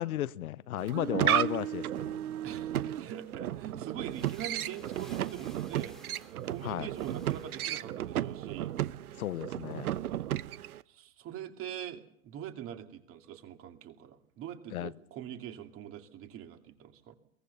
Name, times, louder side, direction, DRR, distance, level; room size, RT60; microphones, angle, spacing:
voice 1, 0.0-2.2 6.6-6.9 9.2-9.9 14.7-14.9, left 13 dB, 70° left, 0.9 m, -34 dB
sound 1, 0.8-10.8, right 12 dB, 70° right, 1.0 m, -34 dB
voice 2, 2.4-6.0 6.5-8.7 10.9-17.2, right 10 dB, 30° right, 2.4 m, -43 dB
sound 2, 3.9-8.1, equal, ahead, 2.4 m, -56 dB
22.5 x 20.5 x 7.0 m
hypercardioid pair, 130°, 45 cm